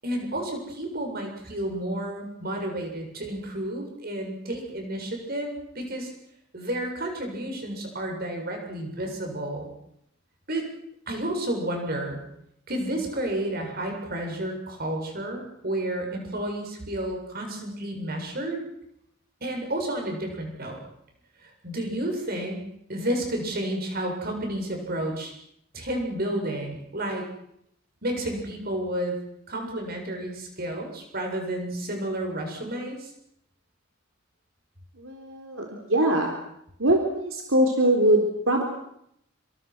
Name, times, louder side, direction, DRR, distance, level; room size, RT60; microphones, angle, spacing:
voice 1, 0.0-6.1 6.5-9.7 10.5-10.6 11.1-12.2 12.7-18.6 19.4-20.8 21.6-22.6 22.9-25.3 25.7-27.3 28.0-29.2 29.5-33.1, right 1 dB, 45° right, 2 dB, 7.4 m, -31 dB
voice 2, 35.0-36.4 36.8-38.6, right 1 dB, 75° right, 2 dB, 3.9 m, -22 dB
28.0 x 26.0 x 6.3 m, 0.75 s
head